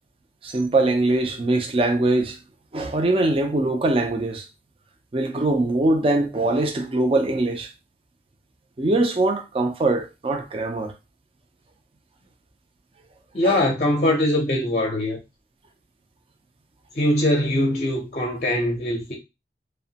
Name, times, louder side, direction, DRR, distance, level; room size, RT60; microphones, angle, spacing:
voice 1, 0.4-2.4 2.7-4.5 5.1-7.7 8.8-10.9 13.4-13.6, right 2 dB, 30° right, 0.4 m, -22 dB
voice 2, 13.3-15.2 17.0-19.2, left 1 dB, 40° left, 0.5 m, -22 dB
2.9 x 2.1 x 2.7 m
head